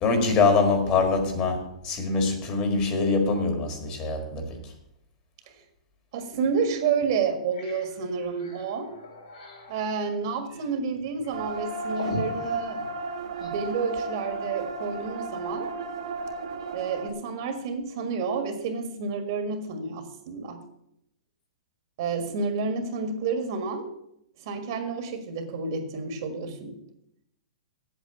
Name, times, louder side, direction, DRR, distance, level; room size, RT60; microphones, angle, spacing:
voice 1, 0.0-4.7, left 4 dB, 25° left, 1.7 m, -24 dB
voice 2, 6.1-8.9 9.7-12.8 13.4-15.7 16.7-20.6 22.0-23.9 24.4-26.7, right 5 dB, 40° right, 1.6 m, -30 dB
sound 1, 6.3-6.4 6.9-7.0 7.3-13.7, left 2 dB, 75° left, 4.2 m, -42 dB
sound 2, 11.3-17.1, right 2 dB, 65° right, 1.6 m, -34 dB
8.2 x 7.9 x 8.1 m
hypercardioid pair, 170°, 4 cm